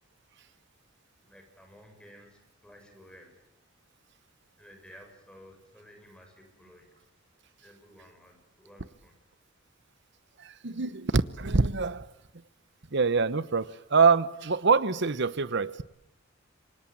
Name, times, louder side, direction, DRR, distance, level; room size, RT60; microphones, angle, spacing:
voice 1, 1.2-3.4 4.6-7.1 7.6-9.2, equal, 5° left, 3 dB, 6.9 m, -54 dB
voice 2, 10.4-12.1 12.9-15.8, right 4 dB, 60° right, 16 dB, 1.0 m, -25 dB
27.5 x 24.5 x 8.8 m, 0.80 s
head